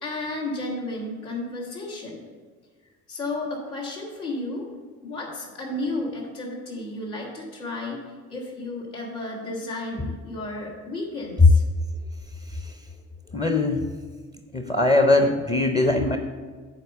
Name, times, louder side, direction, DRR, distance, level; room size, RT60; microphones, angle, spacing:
voice 1, 0.0-2.3 3.1-4.7 5.0-8.0 8.3-11.6, left 2 dB, 80° left, -5 dB, 2.0 m, -32 dB
voice 2, 13.3-13.8 14.5-16.2, left 2 dB, 15° left, 6 dB, 0.6 m, -21 dB
7.7 x 4.6 x 6.9 m, 1.5 s
figure-of-eight pair, 50°, 44 cm